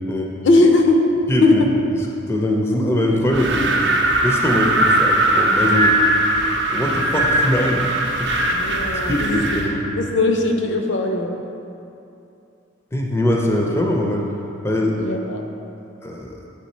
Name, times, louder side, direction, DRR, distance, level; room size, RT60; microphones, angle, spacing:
voice 1, 0.4-1.0 1.4-1.6 8.4-9.6 10.0-11.5 15.0-15.5, left 2 dB, 65° left, 3 dB, 0.5 m, -19 dB
voice 2, 1.3-1.6 2.3-3.7 4.2-6.0 6.7-7.9 8.2-8.5 9.1-9.9 12.9-14.3 14.6-15.0 16.0-16.4, left 1 dB, 15° left, -1 dB, 0.4 m, -21 dB
Wind, 3.3-9.7, right 1 dB, 60° right, 0.6 m, -19 dB
7.6 x 3.6 x 4.2 m, 2.8 s
head